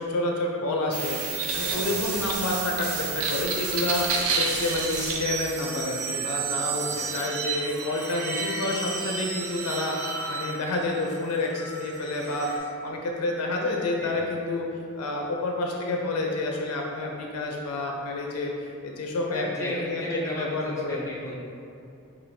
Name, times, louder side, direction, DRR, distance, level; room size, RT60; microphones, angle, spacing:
voice 1, 0.0-14.6 14.9-18.5 18.8-20.0 20.4-21.0, left 2 dB, 85° left, 0 dB, 0.4 m, -29 dB
sound 1, 0.9-12.6, right 5 dB, 75° right, 0.4 m, -31 dB
voice 2, 1.7-2.2 6.7-7.1 14.0-14.3 19.3-21.4, equal, 15° left, -5 dB, 0.5 m, -35 dB
4.9 x 2.6 x 2.6 m, 2.5 s
head